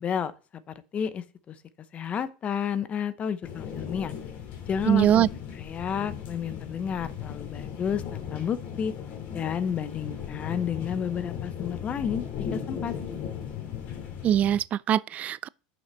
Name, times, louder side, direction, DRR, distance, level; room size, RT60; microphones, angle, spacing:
voice 1, 0.0-1.6 1.9-4.1 4.7-5.3 5.5-8.9 9.3-12.9, left 7 dB, 35° left, 0.8 m, -31 dB
sound 1, 3.4-14.6, left 8 dB, 55° left, 2.7 m, -37 dB
voice 2, 4.9-5.3 14.2-15.5, right 10 dB, 40° right, 0.3 m, -22 dB
6.3 x 6.1 x 6.8 m
hypercardioid pair, 100°, 4 cm